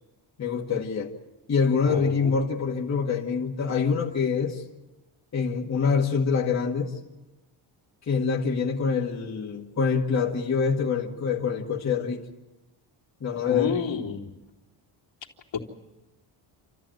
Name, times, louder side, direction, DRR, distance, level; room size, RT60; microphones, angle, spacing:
voice 1, 0.4-1.1 1.5-4.6 5.3-7.0 8.1-12.2 13.2-13.8, left 5 dB, 35° left, 2.0 m, -25 dB
voice 2, 1.9-2.3 13.5-14.3 15.5-15.6, left 6 dB, 65° left, 3.2 m, -30 dB
29.0 x 14.0 x 9.2 m
cardioid pair, 150°, 49 cm